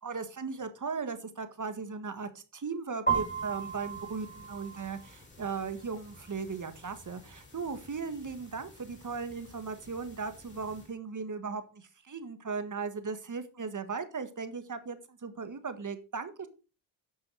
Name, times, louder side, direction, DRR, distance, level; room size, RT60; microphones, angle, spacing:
voice 1, 0.0-16.5, right 5 dB, 40° right, 10 dB, 1.7 m, -37 dB
sound 1, 3.1-10.9, right 6 dB, 20° left, 4.9 m, -39 dB
10.0 x 6.2 x 4.9 m, 0.34 s
cardioid pair, 70°, 47 cm